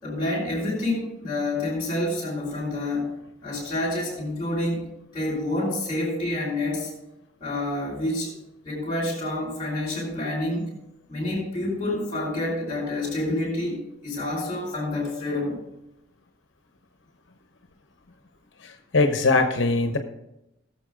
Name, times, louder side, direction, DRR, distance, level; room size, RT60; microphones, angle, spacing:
voice 1, 0.0-3.1 3.4-6.9 7.4-8.3 8.6-10.7 11.1-15.6, left 1 dB, 20° left, -6 dB, 4.7 m, -28 dB
voice 2, 18.6-20.0, left 3 dB, 60° left, 5 dB, 1.0 m, -21 dB
18.5 x 7.1 x 3.8 m, 0.87 s
head